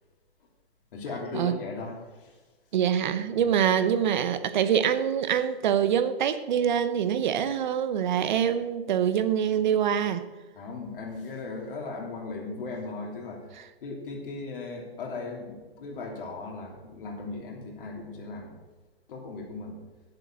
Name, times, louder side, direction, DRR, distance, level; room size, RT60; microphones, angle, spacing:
voice 1, 0.9-2.4 10.5-13.5 13.8-18.6 19.1-19.8, left 3 dB, 55° left, -1 dB, 3.2 m, -37 dB
voice 2, 2.7-10.2, right 8 dB, 45° right, 12 dB, 0.9 m, -25 dB
9.9 x 7.7 x 7.5 m, 1.2 s
hypercardioid pair, 155°, 31 cm